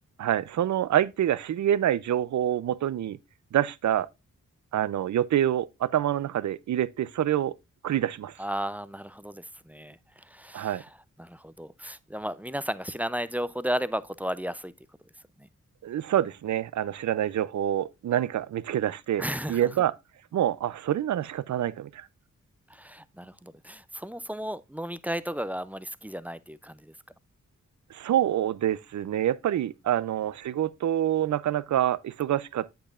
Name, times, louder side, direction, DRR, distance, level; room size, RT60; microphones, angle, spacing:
voice 1, 0.2-3.2 3.5-4.1 4.7-7.5 7.8-8.3 10.5-10.8 15.8-20.0 20.3-22.1 27.9-32.7, right 11 dB, 65° right, 0.5 m, -26 dB
voice 2, 8.4-10.9 11.2-14.7 15.4-15.5 19.2-19.7 22.7-26.9, equal, 5° right, 0.4 m, -34 dB
8.6 x 7.9 x 2.4 m
wide cardioid pair, 90°, 31 cm